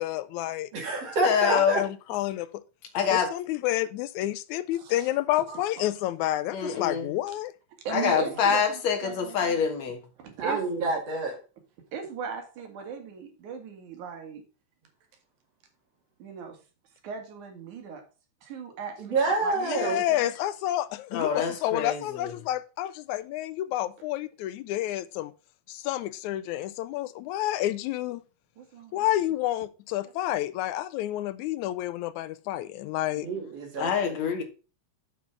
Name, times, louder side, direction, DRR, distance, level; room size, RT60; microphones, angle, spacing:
voice 1, 0.0-0.7 1.5-2.5 3.1-7.5 19.6-25.3 25.7-28.2 28.9-33.3, left 14 dB, 80° left, 1.9 m, -29 dB
voice 2, 0.7-1.8 10.4-11.4 19.0-20.0 33.2-34.3, right 3 dB, 55° right, 3.6 m, -28 dB
voice 3, 1.2-1.8 2.9-3.3 6.5-7.1 7.9-10.0 21.1-22.3 33.8-34.4, left 7 dB, 65° left, 2.7 m, -26 dB
voice 4, 4.7-5.1 5.5-5.9 7.8-9.6 10.2-10.6 11.9-14.4 16.2-16.6 17.0-18.0 18.4-20.3 28.6-29.0, right 6 dB, 80° right, 3.2 m, -38 dB
7.2 x 6.1 x 6.0 m
omnidirectional pair, 3.4 m